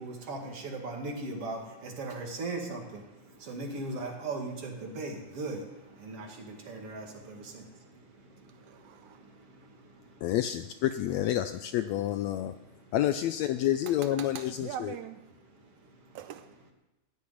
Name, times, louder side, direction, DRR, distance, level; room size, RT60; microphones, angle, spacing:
voice 1, 0.0-3.0 3.4-5.6 6.0-7.6, right 2 dB, 50° right, 2.9 m, -38 dB
voice 2, 8.5-9.2 13.9-15.2 16.1-16.6, right 9 dB, 80° right, 2.0 m, -42 dB
voice 3, 10.2-12.5 12.9-15.0, left 12 dB, 80° left, 1.6 m, -29 dB
14.5 x 7.3 x 9.8 m
omnidirectional pair, 3.6 m